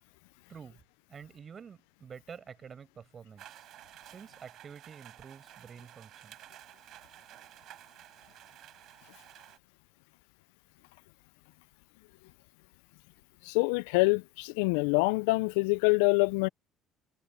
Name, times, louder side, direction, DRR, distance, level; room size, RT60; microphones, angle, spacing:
voice 1, 0.5-0.8 1.1-3.7 4.0-6.4, right 7 dB, 40° right, 7.6 m, -49 dB
sound 1, 3.4-9.6, right 13 dB, 65° right, 4.7 m, -53 dB
voice 2, 13.5-16.5, left 26 dB, 80° left, 0.4 m, -25 dB
hypercardioid pair, 70°, 0 cm